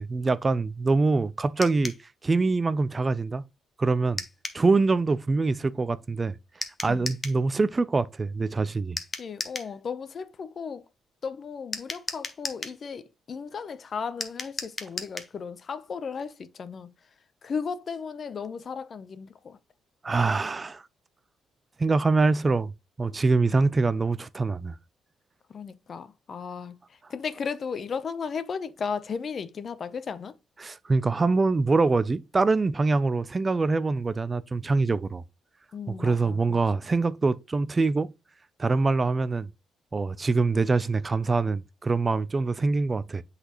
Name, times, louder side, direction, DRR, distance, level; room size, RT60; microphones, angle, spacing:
voice 1, 0.0-1.9 2.2-3.4 3.8-4.2 4.5-6.4 6.8-9.0 20.0-20.8 21.8-22.7 23.0-24.8 30.6-35.2 36.0-38.1 38.6-39.5 39.9-43.2, right 3 dB, 30° right, 0.4 m, -24 dB
sound 1, 1.6-2.0 4.2-4.6 6.6-7.4 9.0-9.7 11.7-12.8 14.2-15.3, left 3 dB, 30° left, 1.1 m, -35 dB
voice 2, 9.2-10.9 11.2-16.9 17.4-19.6 25.5-30.3 35.7-36.6, left 6 dB, 45° left, 0.6 m, -35 dB
7.8 x 4.1 x 2.9 m
cardioid pair, 90°, 0 cm